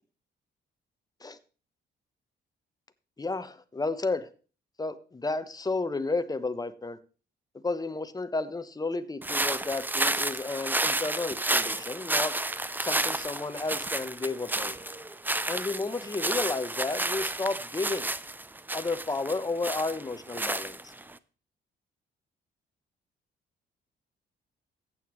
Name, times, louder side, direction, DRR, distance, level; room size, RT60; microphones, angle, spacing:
voice 1, 3.2-4.3 4.8-7.0 7.6-12.3 12.8-14.7 15.5-18.1 18.7-20.8, left 3 dB, 20° left, 11 dB, 1.0 m, -32 dB
sound 1, 9.2-21.1, right 2 dB, 10° right, 0.5 m, -31 dB
14.0 x 8.9 x 3.1 m, 0.37 s
cardioid pair, 90°, 20 cm